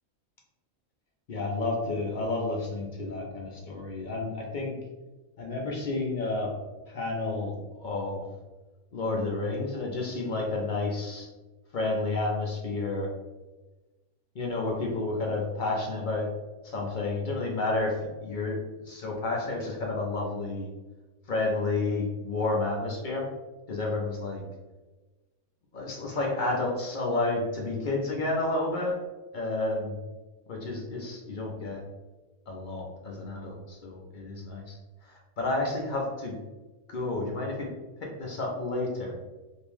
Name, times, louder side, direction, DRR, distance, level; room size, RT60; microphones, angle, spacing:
voice 1, 1.3-4.8 5.4-6.5 6.9-8.2 8.9-11.3 11.7-13.1 14.3-16.3 16.6-18.6 18.9-20.7 21.3-23.3 23.7-24.4 25.7-29.0 29.3-29.9 30.5-31.8 32.5-36.4 36.9-37.7 38.0-39.1, left 2 dB, 55° left, -1 dB, 0.5 m, -30 dB
3.5 x 2.6 x 3.0 m, 1.2 s
omnidirectional pair, 1.5 m